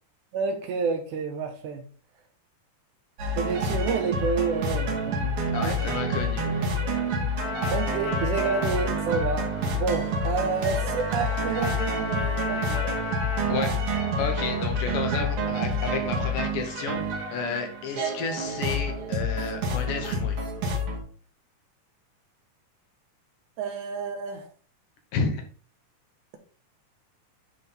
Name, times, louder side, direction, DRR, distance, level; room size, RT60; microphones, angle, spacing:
voice 1, 0.3-1.8 3.4-6.0 7.7-12.9 23.6-24.5, right 5 dB, 75° right, 2.2 m, -29 dB
sound 1, 3.2-21.0, equal, 55° right, 2.0 m, -28 dB
voice 2, 5.5-6.7 13.5-13.8 14.2-17.0 17.3-20.5 25.1-25.4, left 5 dB, 80° left, 2.6 m, -31 dB
Trumpet, 7.4-14.7, left 3 dB, 45° left, 2.0 m, -35 dB
9.8 x 3.6 x 4.2 m
omnidirectional pair, 3.7 m